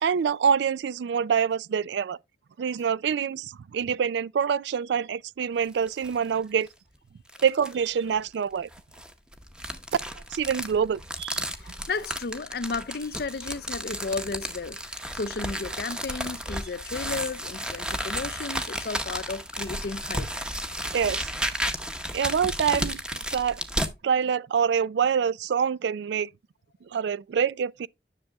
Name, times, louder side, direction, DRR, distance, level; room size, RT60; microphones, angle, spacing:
voice 1, 0.0-2.2 2.6-6.7 7.4-8.7 10.3-11.4 20.9-21.3 22.1-23.0 23.3-23.6 24.0-26.3 26.9-27.9, right 7 dB, 70° right, 0.3 m, -26 dB
sound 1, 5.6-6.2 6.6-6.7 7.3-7.9 8.7-23.9, equal, 5° right, 0.8 m, -33 dB
voice 2, 11.6-20.3, left 4 dB, 60° left, 0.5 m, -34 dB
10.5 x 6.6 x 2.3 m
head